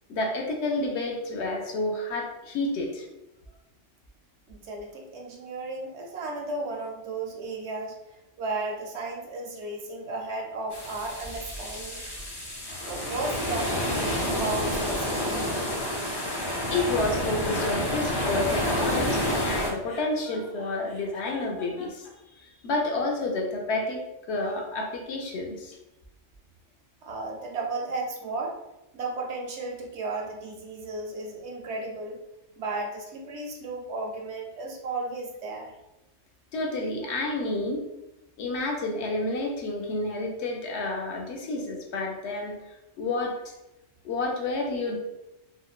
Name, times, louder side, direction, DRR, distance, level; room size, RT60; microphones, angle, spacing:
voice 1, 0.1-3.0 16.7-22.1 22.4-24.0 24.3-25.8 36.5-37.8 38.4-42.6 43.0-43.5 44.0-45.0, left 2 dB, 70° left, 0 dB, 0.9 m, -30 dB
voice 2, 4.5-8.0 8.4-12.0 12.9-15.7 27.0-28.5 28.9-32.2 32.6-35.7, right 3 dB, 70° right, 1 dB, 0.8 m, -34 dB
sound 1, 10.7-19.7, left 1 dB, 30° left, 0.4 m, -29 dB
Chuckle chortle, 19.8-22.1, left 3 dB, 85° left, 1.1 m, -45 dB
3.8 x 2.1 x 2.3 m, 0.95 s
omnidirectional pair, 1.2 m